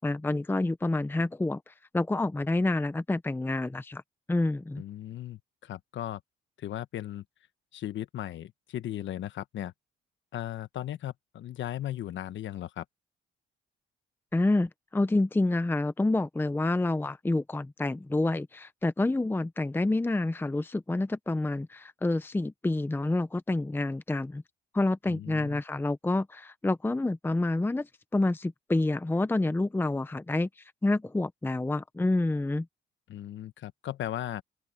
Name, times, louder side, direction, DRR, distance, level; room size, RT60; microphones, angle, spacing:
voice 1, 0.0-4.0 4.3-4.8 14.3-24.4 24.7-30.5 30.8-32.7, left 2 dB, 10° left, 0.7 m, -28 dB
voice 2, 4.8-6.2 6.6-7.2 7.7-9.7 10.3-12.8 25.1-25.6 33.1-34.4, left 12 dB, 70° left, 1.2 m, -37 dB
open air
cardioid pair, 90°, 20 cm